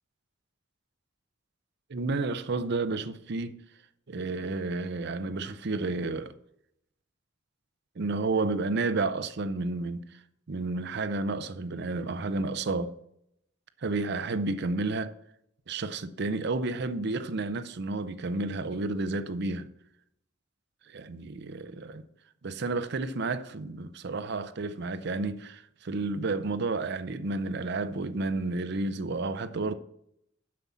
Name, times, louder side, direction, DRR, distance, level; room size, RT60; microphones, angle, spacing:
voice 1, 1.9-3.6 4.1-6.3 8.0-10.2 10.5-12.9 13.8-15.1 15.7-19.7 20.9-22.0 22.4-29.7, right 3 dB, 60° right, 0.6 m, -31 dB
7.4 x 5.6 x 7.3 m
head